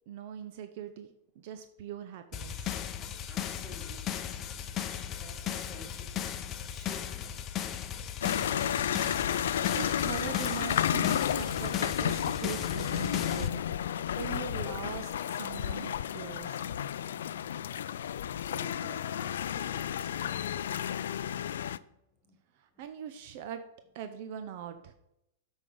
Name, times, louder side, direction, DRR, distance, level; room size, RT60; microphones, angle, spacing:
voice 1, 0.1-1.1 1.4-2.7 9.7-13.6 14.1-16.6 22.8-23.6 23.9-24.9, right 9 dB, 55° right, 9 dB, 0.7 m, -41 dB
sound 1, 2.3-13.5, left 9 dB, 25° left, 0.7 m, -37 dB
voice 2, 3.3-4.7 5.2-6.4 6.7-7.6 18.2-20.9 22.2-22.3 22.7-22.8, left 1 dB, 5° left, -2 dB, 3.2 m, -53 dB
sound 2, 8.2-21.8, left 10 dB, 80° left, 0.4 m, -32 dB
8.4 x 5.4 x 5.5 m, 0.84 s
hypercardioid pair, 140°, 0 cm